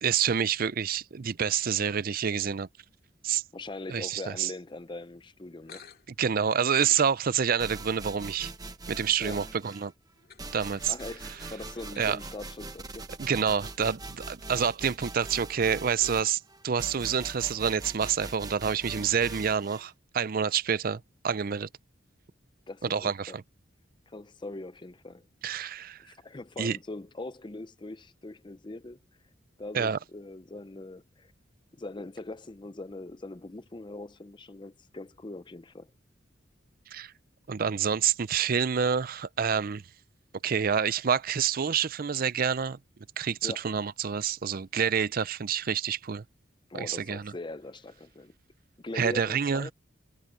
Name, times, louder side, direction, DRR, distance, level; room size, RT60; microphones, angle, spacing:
voice 1, 0.0-2.7 3.2-3.4 3.9-4.5 6.2-8.5 8.9-9.9 10.5-10.9 12.0-12.2 13.2-21.7 22.9-23.4 25.4-26.0 26.6-26.8 29.7-30.0 36.9-37.1 37.5-39.8 40.4-42.8 43.2-46.2 46.7-47.3 48.9-49.7, right 7 dB, 50° right, 0.5 m, -28 dB
voice 2, 3.5-5.9 9.2-9.4 10.9-13.1 22.7-23.4 24.1-25.2 26.0-29.0 29.6-31.3 31.7-35.9 43.4-43.7 46.7-48.4 48.8-49.7, left 2 dB, 25° left, 0.6 m, -41 dB
sound 1, 5.6-12.4, left 6 dB, 50° left, 2.3 m, -57 dB
sound 2, 7.6-9.9 10.4-19.9, right 2 dB, 20° right, 1.0 m, -42 dB
head